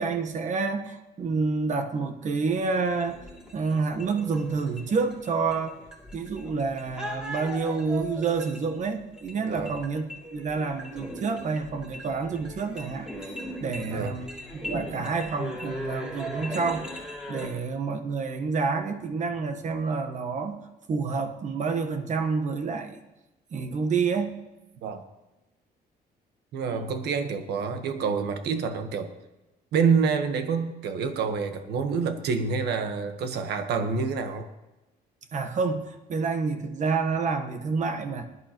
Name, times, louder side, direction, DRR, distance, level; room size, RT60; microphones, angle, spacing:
voice 1, 0.0-3.2 3.5-5.8 6.1-13.1 13.6-14.3 14.7-16.9 17.3-20.6 20.9-23.0 23.5-24.4 26.6-26.8 35.3-38.3, right 4 dB, 45° right, 7 dB, 1.2 m, -28 dB
sound 1, 2.5-17.5, equal, 5° right, 2.8 m, -40 dB
voice 2, 9.4-9.8 13.8-14.2 24.8-25.0 26.5-29.1 29.7-34.5, right 5 dB, 75° right, 7 dB, 1.3 m, -27 dB
20.0 x 11.0 x 3.0 m, 1.0 s
cardioid pair, 150°, 17 cm